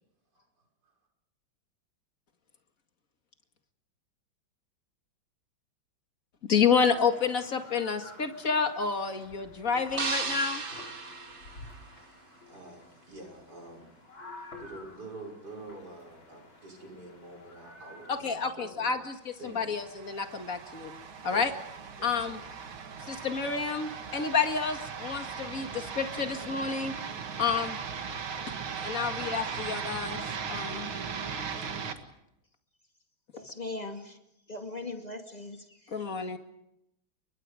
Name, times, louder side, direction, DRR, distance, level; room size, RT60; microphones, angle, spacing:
voice 1, 6.5-10.6 18.1-20.9 21.2-21.5 22.0-22.4 23.1-26.9 27.4-27.8 28.8-30.2 30.5-30.9 35.9-36.4, left 5 dB, 45° left, 5 dB, 2.3 m, -29 dB
sound 1, 6.8-18.2, left 2 dB, 70° left, 5.2 m, -50 dB
sound 2, 10.0-12.3, right 4 dB, 30° right, 1.5 m, -35 dB
voice 2, 11.9-12.8 13.1-13.9 14.3-18.9 19.4-19.7 21.3-21.4 22.0-22.3, right 2 dB, 50° right, 0 dB, 6.4 m, -47 dB
sound 3, 19.4-31.9, right 6 dB, 85° right, 2.6 m, -38 dB
voice 3, 33.3-34.2 34.5-35.6, left 2 dB, 20° left, 3 dB, 2.4 m, -39 dB
29.5 x 24.0 x 5.0 m, 0.83 s
omnidirectional pair, 2.2 m